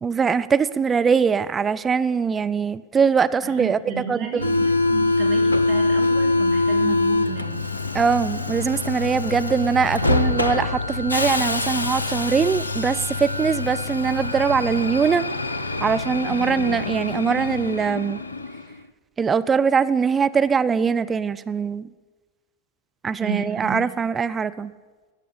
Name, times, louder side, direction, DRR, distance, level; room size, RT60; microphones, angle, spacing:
voice 1, 0.0-3.8 4.1-4.4 7.9-15.2 15.8-18.2 19.2-21.9 23.0-24.7, right 6 dB, 20° right, 13 dB, 0.4 m, -22 dB
voice 2, 3.4-7.6 16.4-16.7 23.2-23.8, right 5 dB, 40° right, 5 dB, 2.2 m, -33 dB
Subway metro underground, 4.4-18.7, left 2 dB, 80° left, 0.5 m, -24 dB
13.0 x 7.4 x 8.6 m, 1.3 s
figure-of-eight pair, 90°, 0 cm